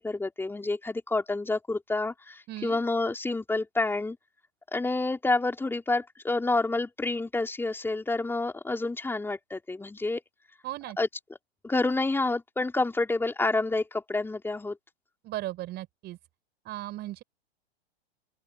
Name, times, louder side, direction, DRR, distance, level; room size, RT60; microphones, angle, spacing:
voice 1, 0.0-4.2 4.7-10.2 11.0-11.1 11.6-14.8, left 2 dB, 5° left, 4.1 m, -28 dB
voice 2, 2.5-2.8 10.6-11.0 15.2-16.2 16.7-17.2, right 15 dB, 30° right, 5.2 m, -36 dB
open air
figure-of-eight pair, 105°, 32 cm